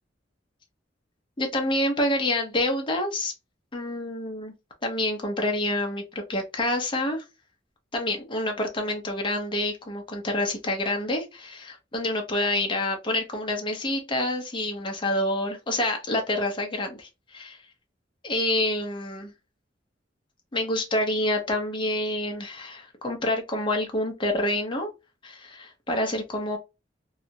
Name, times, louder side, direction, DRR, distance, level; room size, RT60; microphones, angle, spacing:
voice 1, 1.4-3.3 3.7-4.5 4.8-7.2 7.9-17.4 18.2-19.3 20.5-24.9 25.2-26.6, left 1 dB, 25° left, 0.7 m, -27 dB
2.4 x 2.0 x 2.7 m
head